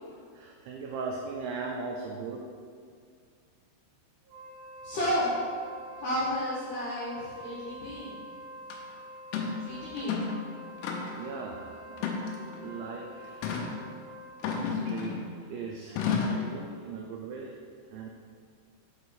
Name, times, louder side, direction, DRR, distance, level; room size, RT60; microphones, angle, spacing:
voice 1, 0.3-2.5 11.1-12.1 12.5-13.6 14.6-15.2 15.5-17.6 17.9-18.1, right 4 dB, 90° right, 0 dB, 2.6 m, -39 dB
Wind instrument woodwind instrument, 4.2-14.8, equal, 65° right, 2.5 m, -46 dB
voice 2, 4.8-5.3 6.0-8.2 9.6-10.2, equal, 70° left, -11 dB, 2.1 m, -32 dB
sound 1, 8.7-8.8 9.3-9.6 10.0-10.4 10.8-11.3 12.0-12.6 13.4-13.7 14.4-15.3 16.0-16.5, left 5 dB, 90° left, 3.4 m, -31 dB
8.2 x 3.5 x 5.5 m, 2.1 s
omnidirectional pair, 5.9 m